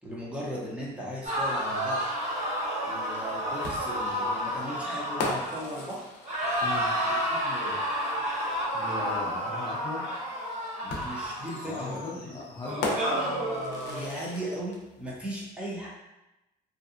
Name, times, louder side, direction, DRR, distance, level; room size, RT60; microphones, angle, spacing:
voice 1, 0.0-2.3 2.8-6.1 7.1-7.9 10.8-12.4 13.9-15.9, equal, 5° right, -6 dB, 0.7 m, -38 dB
sound 1, 1.2-5.9 6.2-12.1 12.6-14.0, equal, 45° right, 0.8 m, -31 dB
sound 2, 3.6-7.3 8.8-8.9 10.9-14.8, left 2 dB, 90° left, 0.5 m, -37 dB
voice 2, 6.6-6.9 8.7-10.0 11.6-13.0, left 3 dB, 25° left, -6 dB, 0.5 m, -37 dB
2.7 x 2.2 x 2.5 m, 0.97 s
cardioid pair, 110°, 17 cm